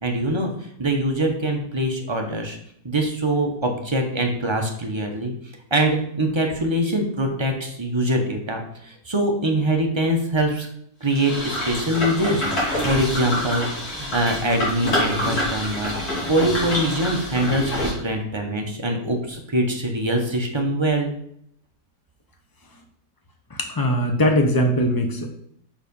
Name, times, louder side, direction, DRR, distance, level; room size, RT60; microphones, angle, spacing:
voice 1, 0.0-2.6 2.8-5.3 5.7-10.7 11.0-12.5 12.8-15.9 16.3-21.1, right 1 dB, 25° right, 2 dB, 0.6 m, -23 dB
sound 1, 11.1-17.9, left 1 dB, 55° left, 3.0 m, -26 dB
voice 2, 23.5-25.3, equal, 25° left, 3 dB, 0.5 m, -20 dB
5.8 x 4.9 x 5.3 m, 0.70 s
omnidirectional pair, 1.9 m